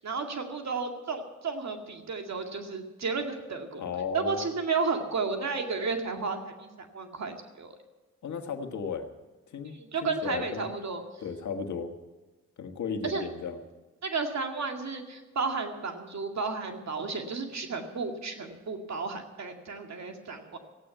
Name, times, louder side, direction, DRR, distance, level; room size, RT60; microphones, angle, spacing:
voice 1, 0.0-3.8 4.1-7.7 9.6-11.0 13.0-13.3 14.0-20.6, right 4 dB, 60° right, 5 dB, 2.2 m, -33 dB
voice 2, 3.8-4.5 8.2-9.1 9.5-9.8 10.0-10.7 11.2-11.9 12.6-13.6 19.7-19.8, left 6 dB, 65° left, 6 dB, 1.7 m, -34 dB
15.5 x 8.8 x 9.1 m, 1.2 s
supercardioid pair, 50°, 31 cm